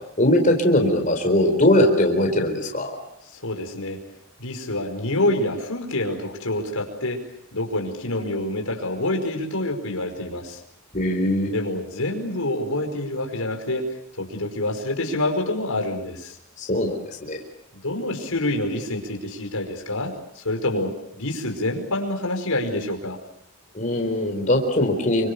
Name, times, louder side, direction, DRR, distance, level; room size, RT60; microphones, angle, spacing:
voice 1, 0.2-2.9 10.9-11.5 16.6-17.4 23.7-25.3, left 1 dB, 35° left, 2 dB, 4.3 m, -20 dB
voice 2, 3.4-4.0 4.4-7.2 7.5-10.6 11.5-13.9 14.2-16.3 17.8-23.2, left 1 dB, 85° left, 2 dB, 5.2 m, -27 dB
28.5 x 25.0 x 6.9 m, 0.78 s
head